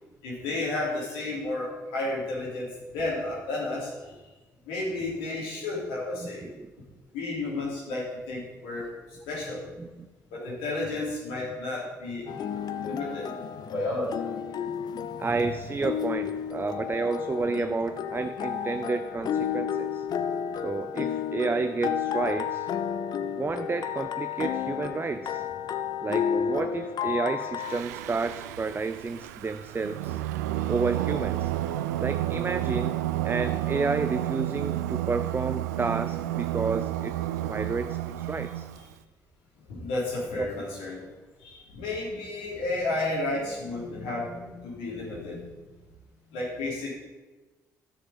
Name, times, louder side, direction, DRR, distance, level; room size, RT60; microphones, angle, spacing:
voice 1, 0.2-4.2 4.7-6.5 7.1-10.0 10.3-12.3 12.8-14.3 14.6-15.1 20.3-20.4 39.7-41.1 41.4-45.5 46.3-47.0, left 2 dB, 70° left, -4 dB, 3.5 m, -32 dB
voice 2, 6.2-6.7 9.8-10.1 15.2-20.0 20.6-22.7 23.4-25.4 26.0-30.2 30.7-31.5 32.0-33.0 33.2-37.1 37.4-38.7 40.4-40.5, right 4 dB, 25° right, 10 dB, 0.5 m, -31 dB
sound 1, 12.3-27.8, left 8 dB, 50° left, 0.6 m, -32 dB
Singing, 27.6-38.9, right 14 dB, 75° right, 0.4 m, -31 dB
12.5 x 6.7 x 5.3 m, 1.2 s
figure-of-eight pair, 45°, 9 cm